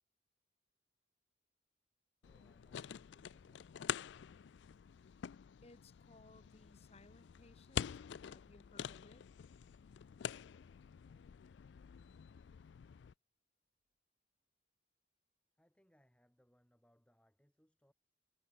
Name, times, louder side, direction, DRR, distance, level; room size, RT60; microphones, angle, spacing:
sound 1, 2.2-13.1, left 8 dB, 70° left, 0.3 m, -47 dB
voice 1, 2.2-3.9 15.5-17.9, equal, 5° left, 6.5 m, -73 dB
voice 2, 5.6-7.9 8.3-9.2, left 2 dB, 35° left, 1.6 m, -62 dB
head